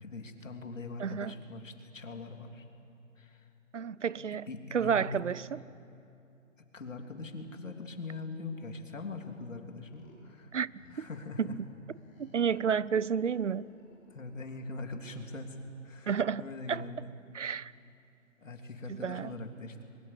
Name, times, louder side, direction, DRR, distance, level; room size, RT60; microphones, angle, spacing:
voice 1, 0.0-2.6 3.2-3.5 4.2-5.1 6.6-10.5 10.9-11.6 14.1-17.1 18.4-19.8, left 3 dB, 70° left, 3.2 m, -42 dB
voice 2, 1.0-1.4 3.7-5.6 10.5-10.7 11.0-11.1 11.4-11.5 12.2-13.7 16.1-16.8 17.3-17.7 18.9-19.3, right 7 dB, 65° right, 0.7 m, -31 dB
sound 1, 9.9-10.3 10.6-11.3 11.9-12.5 13.1-15.2, left 1 dB, 15° left, 4.6 m, -61 dB
23.0 x 23.0 x 8.6 m
hypercardioid pair, 175°, 40 cm